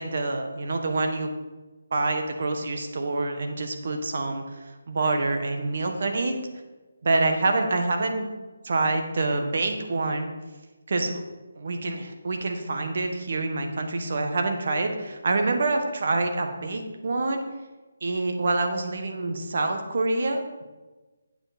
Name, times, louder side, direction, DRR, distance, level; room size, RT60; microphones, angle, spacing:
voice 1, 0.0-1.3 1.9-6.3 7.0-8.3 8.6-10.3 10.9-11.2 11.6-17.4 18.0-20.6, right 2 dB, 55° right, 4 dB, 1.4 m, -26 dB
8.8 x 8.0 x 4.3 m, 1.2 s
figure-of-eight pair, 160°, 0 cm